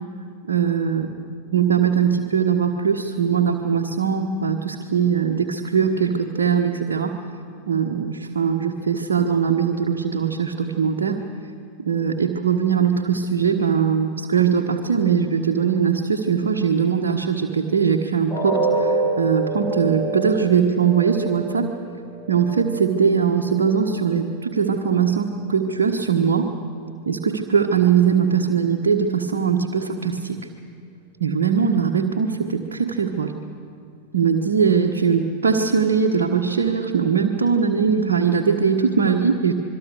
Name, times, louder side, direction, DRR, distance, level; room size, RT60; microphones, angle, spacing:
voice 1, 0.5-1.1 1.5-7.2 7.7-11.2 11.8-21.7 22.3-26.5 27.0-30.4 31.2-33.3 34.1-39.5, right 6 dB, 65° right, 0 dB, 1.4 m, -21 dB
sound 1, 18.3-24.3 24.7-24.9 25.3-25.4, right 3 dB, 15° left, 6.3 m, -27 dB
26.5 x 22.5 x 6.7 m, 2.3 s
figure-of-eight pair, 90°, 0 cm